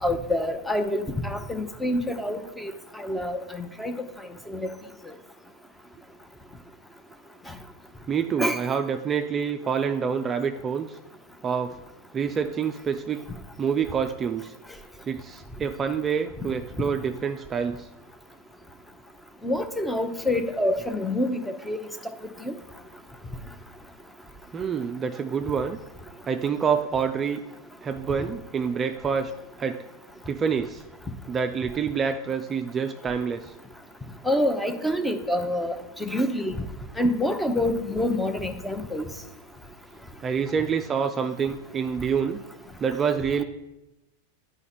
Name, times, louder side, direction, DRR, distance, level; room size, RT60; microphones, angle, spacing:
voice 1, 0.0-3.9 4.5-4.7 8.4-8.6 19.4-21.4 21.7-21.8 22.4-22.5 34.2-36.6 37.0-39.0, left 1 dB, 5° left, 8 dB, 0.8 m, -26 dB
voice 2, 8.1-11.0 11.4-11.8 12.1-13.2 13.6-14.5 15.1-17.9 24.5-25.8 26.3-27.4 27.8-29.3 29.6-29.8 30.3-30.8 31.3-33.5 40.2-42.4 42.8-43.4, right 6 dB, 25° right, 7 dB, 0.4 m, -27 dB
9.5 x 5.0 x 4.3 m, 0.95 s
hypercardioid pair, 120°, 0 cm